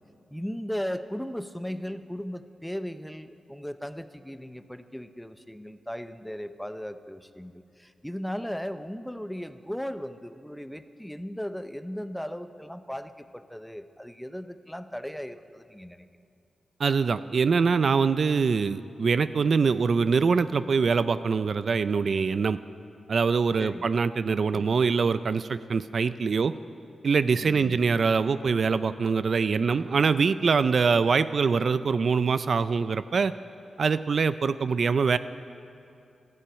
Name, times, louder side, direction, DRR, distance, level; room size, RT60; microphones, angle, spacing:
voice 1, 0.3-16.1 23.6-23.9 24.5-24.8 27.4-27.9, equal, 5° left, 11 dB, 0.5 m, -37 dB
voice 2, 16.8-22.6 23.1-26.5 27.0-33.3 33.8-35.2, right 5 dB, 50° right, 14 dB, 0.4 m, -24 dB
13.0 x 11.5 x 8.9 m, 2.6 s
wide cardioid pair, 135°, 0 cm